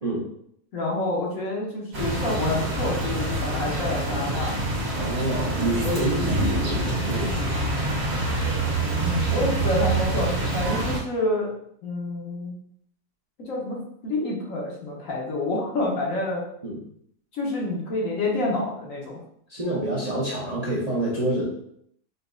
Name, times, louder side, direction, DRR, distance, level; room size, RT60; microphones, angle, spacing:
voice 1, 0.7-4.7 9.0-11.5 11.8-12.5 13.4-16.4 17.3-19.2, left 2 dB, 65° left, -2 dB, 1.3 m, -28 dB
sound 1, 1.9-11.0, right 2 dB, 65° right, 1.5 m, -26 dB
voice 2, 4.9-8.0 16.6-16.8 19.5-21.4, right 1 dB, 35° right, -6 dB, 0.7 m, -28 dB
5.1 x 2.9 x 2.5 m, 0.69 s
omnidirectional pair, 1.6 m